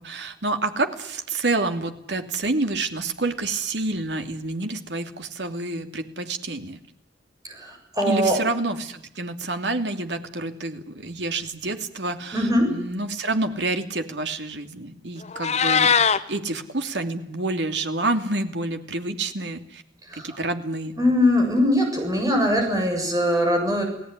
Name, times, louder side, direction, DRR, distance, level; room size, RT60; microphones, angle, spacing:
voice 1, 0.0-6.8 8.1-15.9 16.3-19.8 20.1-21.0, right 2 dB, 75° right, 7 dB, 2.8 m, -28 dB
voice 2, 7.4-8.4 12.3-12.7 20.1-20.4 21.0-23.8, left 1 dB, 20° right, 2 dB, 7.4 m, -21 dB
Meow, 15.2-16.2, left 6 dB, 40° left, 1.2 m, -20 dB
30.0 x 18.5 x 9.8 m, 0.78 s
head